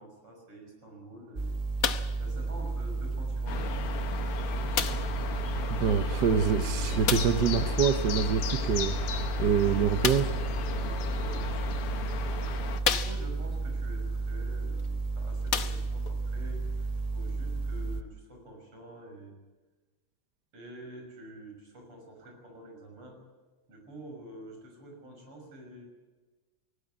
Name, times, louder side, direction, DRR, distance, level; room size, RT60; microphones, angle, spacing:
voice 1, 0.0-1.5 2.2-3.9 10.6-12.0 12.2-19.4 20.5-23.2 23.7-25.8, right 1 dB, 90° right, 2 dB, 6.9 m, -48 dB
sound 1, 1.4-18.0, right 3 dB, 30° right, 0.8 m, -32 dB
sound 2, 1.8-2.2 3.1-3.2 4.7-5.2 7.0-7.5 10.0-10.4 11.4-11.5 12.1-12.2 12.8-13.5 14.8-14.9 15.4-16.2 17.0-17.1, left 7 dB, 50° left, 1.1 m, -30 dB
sound 3, 3.5-12.8, left 6 dB, 85° left, 2.2 m, -36 dB
voice 2, 5.7-10.3, right 7 dB, 60° right, 8 dB, 1.4 m, -26 dB
19.5 x 17.0 x 9.4 m, 1.3 s
omnidirectional pair, 2.4 m